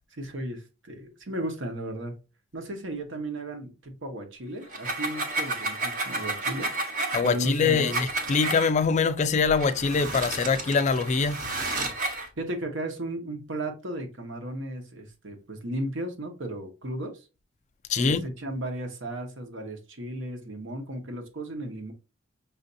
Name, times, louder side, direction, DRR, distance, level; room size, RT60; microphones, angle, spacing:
voice 1, 0.1-2.1 2.5-6.7 7.2-8.0 12.4-17.3 18.0-21.9, right 1 dB, 70° right, 1.0 m, -35 dB
sound 1, 4.6-8.7 9.5-12.3, right 2 dB, 45° right, 1.0 m, -32 dB
voice 2, 7.1-11.4 17.9-18.2, left 5 dB, 35° left, 0.3 m, -24 dB
5.5 x 2.6 x 2.6 m
head